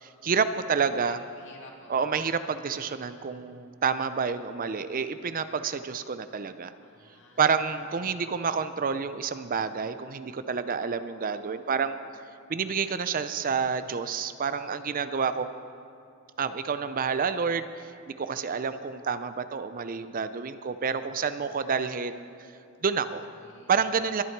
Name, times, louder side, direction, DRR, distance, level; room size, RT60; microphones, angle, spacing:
voice 1, 0.0-1.2 1.9-6.7 7.4-11.9 12.5-15.5 16.4-17.9 18.2-22.3 22.8-23.3 23.7-24.2, right 6 dB, 40° right, 11 dB, 0.5 m, -29 dB
voice 2, 1.0-2.1 6.8-7.4 21.4-21.7 23.4-23.7, left 2 dB, 60° left, -1 dB, 2.4 m, -52 dB
22.0 x 11.0 x 4.6 m, 2.4 s
head